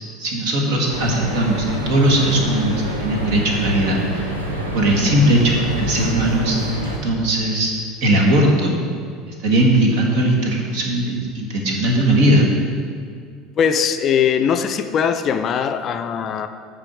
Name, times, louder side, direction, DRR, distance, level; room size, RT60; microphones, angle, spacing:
voice 1, 0.2-4.3 4.7-6.6 6.8-7.7 8.0-8.8 9.4-12.5, right 1 dB, 55° right, 0 dB, 1.4 m, -18 dB
sound 1, 0.9-7.0, right 1 dB, 80° right, 0.9 m, -26 dB
voice 2, 13.6-16.5, left 7 dB, 40° left, 9 dB, 0.4 m, -20 dB
8.9 x 3.4 x 6.1 m, 2.1 s
figure-of-eight pair, 70°, 0 cm